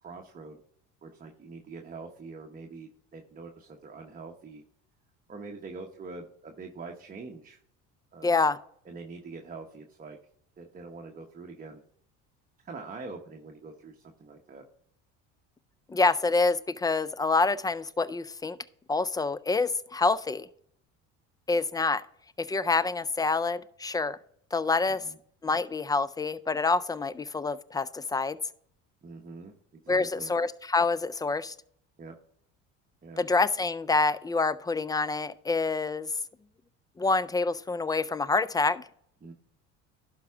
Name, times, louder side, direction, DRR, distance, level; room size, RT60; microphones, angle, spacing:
voice 1, 0.0-0.6 1.0-4.6 5.3-7.6 8.1-8.5 8.8-10.2 10.6-11.8 12.6-14.6 24.9-25.2 29.0-30.3 32.0-32.1 33.0-33.3 39.2-39.3, right 4 dB, 25° right, 1.1 m, -44 dB
voice 2, 8.2-8.6 15.9-18.6 18.9-20.5 21.5-22.0 22.4-24.2 24.5-25.0 25.4-28.4 29.9-31.5 33.2-36.1 37.0-38.8, left 3 dB, 10° left, 0.3 m, -27 dB
11.5 x 4.7 x 3.6 m
supercardioid pair, 85°, 34 cm